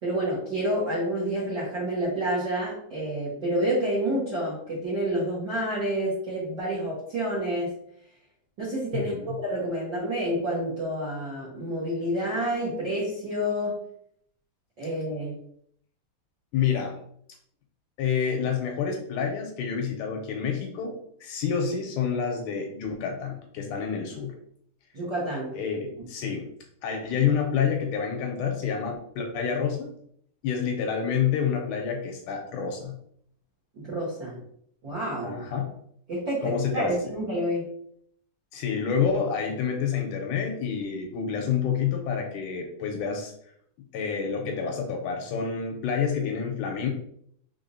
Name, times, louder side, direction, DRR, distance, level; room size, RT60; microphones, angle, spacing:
voice 1, 0.0-7.7 8.6-13.8 14.8-15.4 24.9-25.5 33.7-34.4 34.8-35.4 36.1-37.7, right 1 dB, 50° right, -8 dB, 1.4 m, -29 dB
voice 2, 8.9-9.3 16.5-17.0 18.0-20.9 21.2-24.3 25.5-26.5 26.8-29.9 30.4-32.9 35.2-35.7 36.4-37.0 38.5-43.3 43.9-46.9, left 7 dB, 80° left, 3 dB, 2.0 m, -28 dB
4.9 x 3.6 x 2.6 m, 0.67 s
omnidirectional pair, 3.8 m